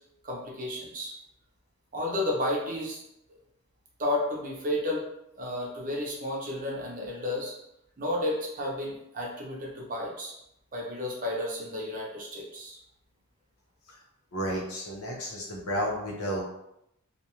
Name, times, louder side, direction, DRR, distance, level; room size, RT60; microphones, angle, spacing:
voice 1, 0.2-1.1 1.9-3.0 4.0-5.0 5.4-7.5 8.0-10.3 10.7-12.8, left 1 dB, 35° right, -3 dB, 0.6 m, -32 dB
voice 2, 14.3-16.4, equal, 75° left, -3 dB, 0.8 m, -32 dB
2.4 x 2.3 x 2.9 m, 0.82 s
head